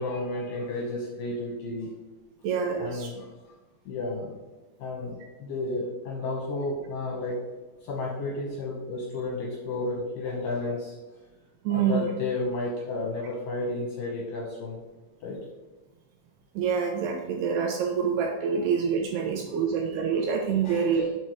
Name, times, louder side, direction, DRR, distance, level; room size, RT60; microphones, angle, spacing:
voice 1, 0.0-1.9 2.8-3.3 3.9-4.4 4.8-7.4 7.8-10.9 11.7-14.8 15.2-15.4 16.7-17.0 18.5-18.8 20.6-21.1, left 2 dB, 70° left, -2 dB, 2.2 m, -32 dB
voice 2, 2.4-3.1 11.7-12.1 16.6-21.1, right 6 dB, 85° right, 2 dB, 2.5 m, -26 dB
7.3 x 4.3 x 4.9 m, 1.2 s
omnidirectional pair, 5.2 m